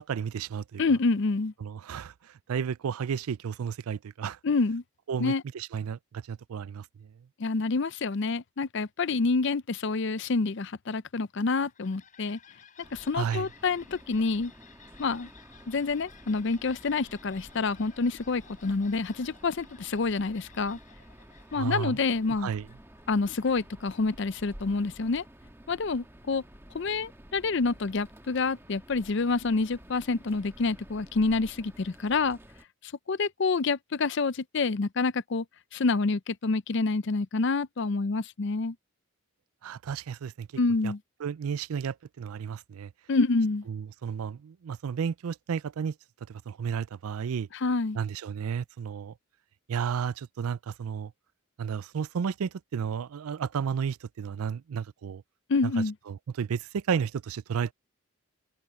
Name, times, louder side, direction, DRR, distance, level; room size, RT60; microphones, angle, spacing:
voice 1, 0.0-0.8 1.6-4.4 5.1-7.1 13.1-13.5 21.5-22.0 22.3-22.7 39.6-40.5 40.8-40.9 41.2-42.9 43.7-46.0 46.3-47.5 47.9-49.1 49.7-51.1 51.6-55.2 55.6-57.7, right 7 dB, 80° right, 0.4 m, -33 dB
voice 2, 0.8-1.5 4.4-4.8 5.2-5.4 7.4-12.4 12.9-14.5 15.0-15.3 15.7-20.8 21.5-22.5 23.1-25.2 25.7-26.4 26.7-32.4 33.1-35.4 35.7-38.8 40.6-41.0 43.1-43.6 47.6-48.0 55.5-55.9, left 3 dB, 55° left, 0.5 m, -27 dB
sound 1, 11.4-23.9, left 7 dB, 35° left, 5.8 m, -57 dB
sound 2, 12.8-32.6, right 1 dB, 10° right, 1.7 m, -52 dB
head